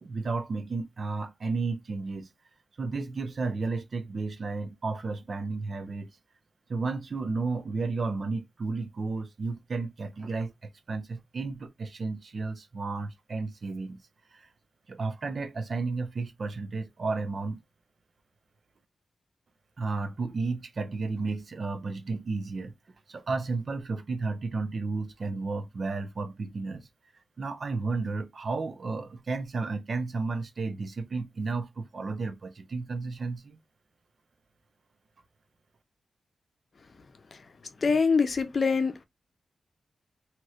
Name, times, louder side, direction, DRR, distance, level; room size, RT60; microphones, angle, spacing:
voice 1, 0.0-2.3 2.8-6.1 6.7-14.0 14.3-14.5 14.9-17.6 19.8-22.7 23.1-26.9 27.4-33.6, right 3 dB, 55° right, 0.6 m, -33 dB
voice 2, 37.8-39.0, left 5 dB, 50° left, 0.6 m, -24 dB
3.1 x 2.9 x 2.4 m
wide cardioid pair, 95°, 0 cm